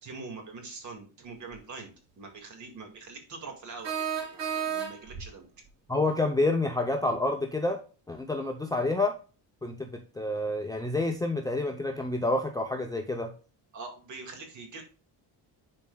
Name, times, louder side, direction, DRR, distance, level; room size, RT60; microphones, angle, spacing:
voice 1, 0.0-5.5 13.7-14.8, right 4 dB, 45° right, 4 dB, 2.0 m, -43 dB
sound 1, 1.5-1.6 3.8-5.3, right 8 dB, 80° right, 2.3 m, -32 dB
voice 2, 5.9-7.8 8.1-9.1 9.6-9.9 10.2-13.3, left 2 dB, 10° left, 3 dB, 0.5 m, -28 dB
11.0 x 4.4 x 2.3 m, 0.35 s
cardioid pair, 165°, 42 cm